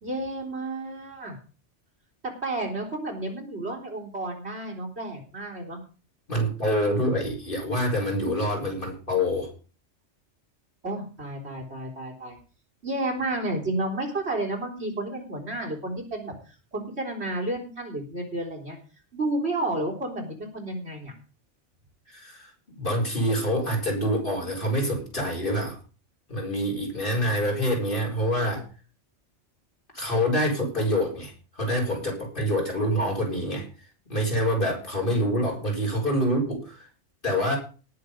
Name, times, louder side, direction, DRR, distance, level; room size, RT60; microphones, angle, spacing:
voice 1, 0.0-1.4 2.2-5.8 10.8-12.4 12.8-18.8 19.1-21.1, right 2 dB, 60° right, -1 dB, 4.0 m, -31 dB
voice 2, 6.3-9.5 22.1-22.5 22.7-25.8 26.3-28.6 29.9-33.7 34.1-36.9 37.2-37.6, equal, 45° left, -1 dB, 4.6 m, -26 dB
18.5 x 6.8 x 5.2 m, 0.37 s
omnidirectional pair, 1.2 m